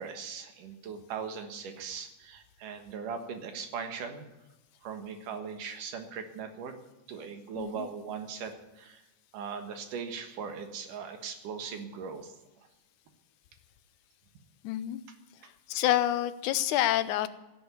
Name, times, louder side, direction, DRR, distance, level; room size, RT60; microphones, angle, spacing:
voice 1, 0.0-4.2 4.8-6.7 7.1-9.0 9.3-12.3, right 6 dB, 80° right, 6 dB, 3.1 m, -39 dB
voice 2, 7.6-7.9 14.6-15.0 15.4-17.3, left 13 dB, 75° left, 13 dB, 2.2 m, -28 dB
16.0 x 7.9 x 9.5 m, 1.0 s
omnidirectional pair, 3.6 m